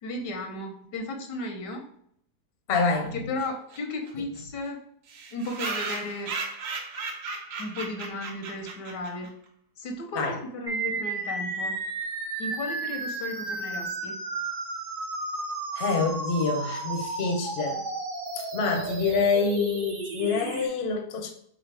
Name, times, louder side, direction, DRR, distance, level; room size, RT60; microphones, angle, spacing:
voice 1, 0.0-1.8 3.1-4.8 5.3-6.3 7.6-9.3 9.8-11.8 12.4-14.2, left 2 dB, 85° left, 1.5 m, -35 dB
voice 2, 2.7-3.2 10.1-10.4 15.8-17.8 18.4-21.3, left 4 dB, 50° left, 0.8 m, -26 dB
sound 1, 3.4-3.5 3.7-3.8 4.1-4.2 4.4-4.5 5.1-9.3, right 4 dB, 70° right, 1.3 m, -35 dB
sound 2, 10.7-20.7, right 3 dB, 55° right, 0.6 m, -33 dB
3.9 x 3.8 x 3.3 m
omnidirectional pair, 1.8 m